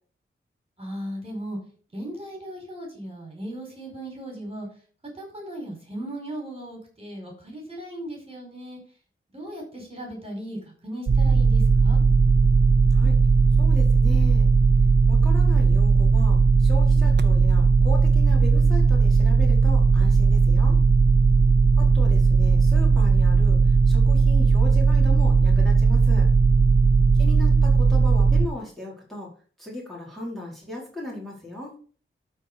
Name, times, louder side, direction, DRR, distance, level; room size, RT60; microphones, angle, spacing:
voice 1, 0.8-1.6 1.9-4.7 5.2-8.8 9.3-12.0 21.2-21.4, right 1 dB, 25° right, 0 dB, 4.7 m, -37 dB
sound 1, 11.1-28.5, right 4 dB, 55° right, 0.8 m, -17 dB
voice 2, 13.6-14.5 15.1-20.8 21.8-26.3 27.2-29.3 29.6-31.7, left 1 dB, ahead, -5 dB, 4.6 m, -37 dB
12.0 x 4.8 x 5.4 m, 0.42 s
wide cardioid pair, 75°, 21 cm